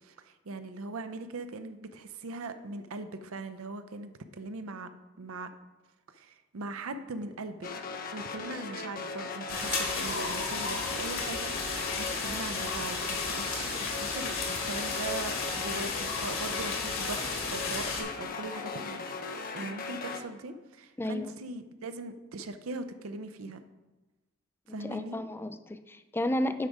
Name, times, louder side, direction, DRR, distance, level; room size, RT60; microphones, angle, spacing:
voice 1, 0.0-4.9 5.2-5.5 6.1-7.7 8.1-11.6 11.9-23.7 24.7-25.2, right 3 dB, 85° right, 10 dB, 0.6 m, -40 dB
sound 1, 7.6-20.2, left 4 dB, 45° left, 0.7 m, -38 dB
sound 2, 9.5-18.0, left 4 dB, 70° left, 1.7 m, -33 dB
voice 2, 21.0-21.3 24.8-26.7, left 1 dB, 10° left, 10 dB, 0.3 m, -32 dB
8.1 x 5.3 x 4.9 m, 1.1 s
head